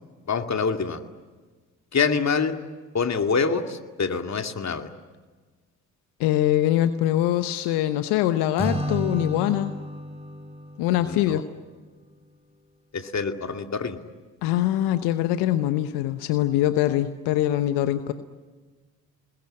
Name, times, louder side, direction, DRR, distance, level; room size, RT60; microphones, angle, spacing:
voice 1, 0.3-1.0 1.9-2.6 2.9-4.9 11.0-11.4 12.9-14.0, left 5 dB, 40° left, 6 dB, 2.4 m, -25 dB
voice 2, 6.2-9.8 10.8-11.4 14.4-18.1, left 13 dB, 75° left, 10 dB, 1.0 m, -23 dB
Acoustic guitar / Strum, 8.6-11.9, right 1 dB, 15° right, 6.7 m, -32 dB
28.5 x 21.0 x 8.8 m, 1.4 s
hypercardioid pair, 45°, 40 cm